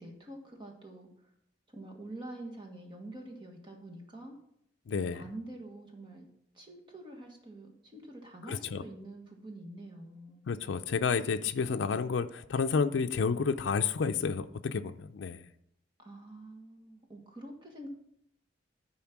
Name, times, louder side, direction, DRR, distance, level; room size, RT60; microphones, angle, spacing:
voice 1, 0.0-1.3 1.7-4.4 5.1-6.3 6.5-10.4 16.0-17.9, right 1 dB, 25° right, 1 dB, 1.5 m, -46 dB
voice 2, 4.9-5.2 8.5-8.8 10.5-15.4, left 5 dB, 80° left, 8 dB, 0.4 m, -30 dB
10.5 x 4.4 x 6.0 m, 0.74 s
head